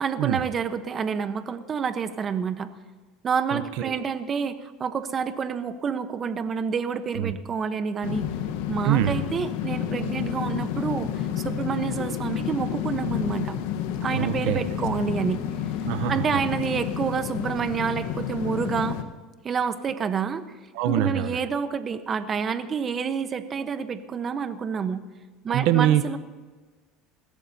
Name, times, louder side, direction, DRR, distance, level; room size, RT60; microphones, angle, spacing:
voice 1, 0.0-2.7 3.2-8.3 8.7-13.6 14.0-15.4 16.1-19.0 19.4-20.4 20.8-25.0 25.4-26.2, right 6 dB, 30° right, 10 dB, 1.0 m, -28 dB
voice 2, 3.5-4.0 7.1-7.3 8.8-9.2 14.1-14.6 15.8-16.4 20.7-21.4 25.5-26.2, right 11 dB, 70° right, 12 dB, 0.8 m, -24 dB
sound 1, 8.0-19.0, left 9 dB, 75° left, 1.2 m, -30 dB
21.5 x 16.0 x 2.8 m, 1.3 s
supercardioid pair, 120°, 0 cm